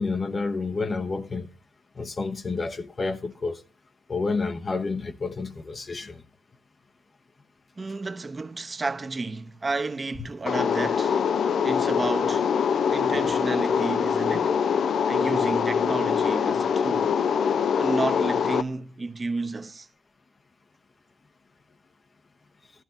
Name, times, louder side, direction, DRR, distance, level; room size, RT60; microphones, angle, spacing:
voice 1, 0.0-1.5 2.0-3.6 4.1-6.2, left 3 dB, 45° left, 0.8 m, -29 dB
voice 2, 7.8-11.3 11.6-12.5 12.9-14.6 15.1-17.2 17.8-19.9, right 3 dB, 40° right, 0.9 m, -31 dB
sound 1, 10.5-18.6, left 7 dB, 70° left, 0.4 m, -24 dB
14.5 x 12.5 x 2.6 m
supercardioid pair, 50°, 0 cm